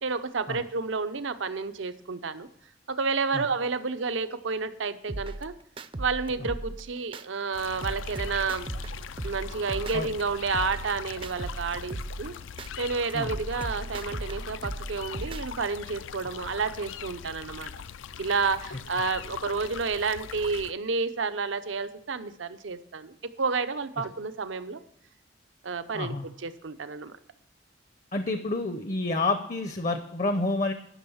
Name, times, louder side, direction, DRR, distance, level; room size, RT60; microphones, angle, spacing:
voice 1, 0.0-2.5 2.9-5.5 6.0-8.7 9.2-12.3 12.8-17.7 18.2-24.8 25.6-27.1, right 4 dB, 80° right, 11 dB, 0.7 m, -30 dB
sound 1, 5.1-7.2 7.6-10.2 10.5-12.7 13.1-15.7, right 2 dB, 25° right, 0.4 m, -37 dB
sound 2, 7.5-20.7, left 7 dB, 80° left, 0.4 m, -41 dB
voice 2, 25.9-26.3 28.1-30.7, left 2 dB, 40° left, 8 dB, 0.6 m, -28 dB
11.0 x 6.3 x 7.0 m, 0.76 s
head